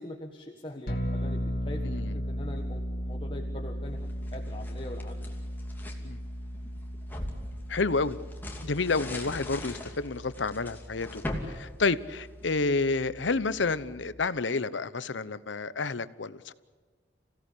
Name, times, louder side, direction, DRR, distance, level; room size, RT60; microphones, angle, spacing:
voice 1, 0.0-1.4 1.6-4.0 4.3-5.4 8.5-8.7, left 1 dB, 30° left, 2 dB, 1.5 m, -42 dB
sound 1, 0.9-14.3, equal, 50° left, 2.8 m, -37 dB
voice 2, 1.8-2.2 6.0-6.2 7.7-8.2 8.6-11.2 11.5-16.5, left 3 dB, 80° left, 16 dB, 0.9 m, -29 dB
sound 2, 4.1-6.0 6.5-12.6, left 1 dB, 10° left, 2.7 m, -41 dB
27.5 x 17.0 x 8.5 m, 1.5 s
head